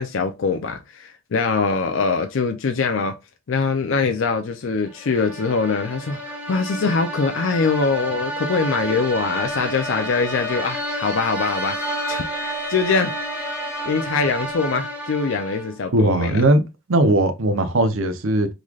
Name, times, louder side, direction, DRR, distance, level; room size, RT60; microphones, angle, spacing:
voice 1, 0.0-3.2 3.5-13.1 13.9-16.4, left 4 dB, 70° left, 0.5 m, -23 dB
sound 1, 4.9-15.9, right 1 dB, 10° right, 1.2 m, -30 dB
Bowed string instrument, 8.9-14.2, left 2 dB, 15° left, 0.5 m, -36 dB
voice 2, 15.9-16.6 16.9-18.5, right 1 dB, 85° right, 0.8 m, -18 dB
3.9 x 3.2 x 2.3 m
head